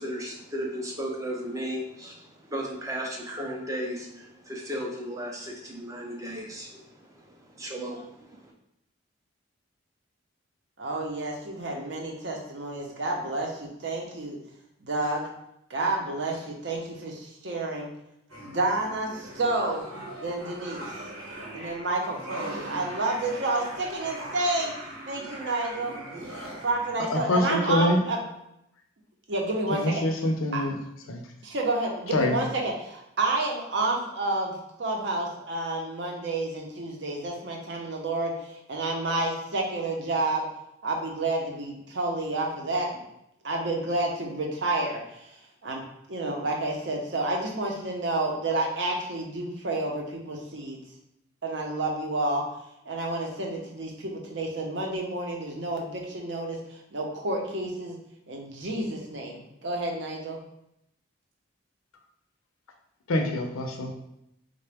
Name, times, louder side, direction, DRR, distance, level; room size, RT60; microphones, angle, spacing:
voice 1, 0.0-8.5, equal, 15° right, 0 dB, 0.5 m, -35 dB
voice 2, 10.8-14.4 14.8-15.3 15.7-17.9 18.4-19.8 20.2-20.9 21.5-24.7 25.1-26.0 26.6-28.2 29.3-30.0 30.5-30.6 31.4-34.5 34.8-40.5 40.8-43.0 43.4-45.3 45.6-45.8 46.1-50.8 51.4-52.4 52.9-58.0 58.3-60.4, right 2 dB, 55° right, 0 dB, 0.7 m, -30 dB
sound 1, 18.3-26.9, right 1 dB, 90° right, 1.1 m, -40 dB
voice 3, 27.1-28.0 29.7-30.8 31.1-31.2 32.1-32.3 63.1-63.9, left 1 dB, 85° left, 4 dB, 0.5 m, -25 dB
3.8 x 2.2 x 3.3 m, 0.80 s
head